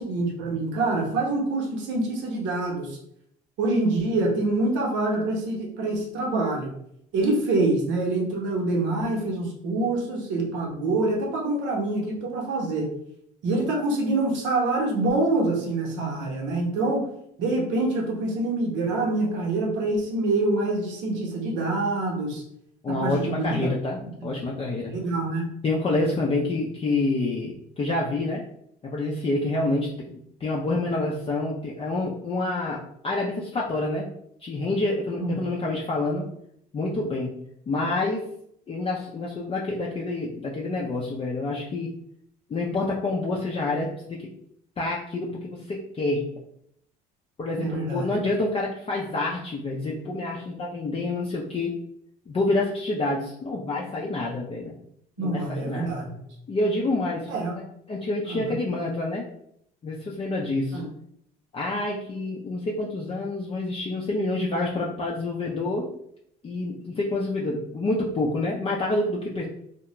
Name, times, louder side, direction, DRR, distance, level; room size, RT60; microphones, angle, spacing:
voice 1, 0.0-3.0 3.6-6.7 7.1-12.9 13.4-17.1 17.4-22.4 22.9-23.7 24.9-25.5 35.2-35.3 47.6-48.2 55.2-56.2 57.3-57.5 58.3-58.5 60.7-60.9, right 2 dB, 70° right, 0 dB, 0.9 m, -26 dB
voice 2, 22.8-24.9 25.6-28.4 28.8-34.1 34.4-36.2 36.7-37.4 37.7-38.2 38.7-41.9 42.5-44.3 44.8-46.3 47.4-51.7 52.3-54.7 55.2-55.9 56.5-57.3 57.9-59.3 59.8-60.8 61.5-65.9 66.4-69.4, left 2 dB, 30° left, -3 dB, 0.5 m, -27 dB
2.3 x 2.1 x 2.9 m, 0.71 s
supercardioid pair, 70°, 20 cm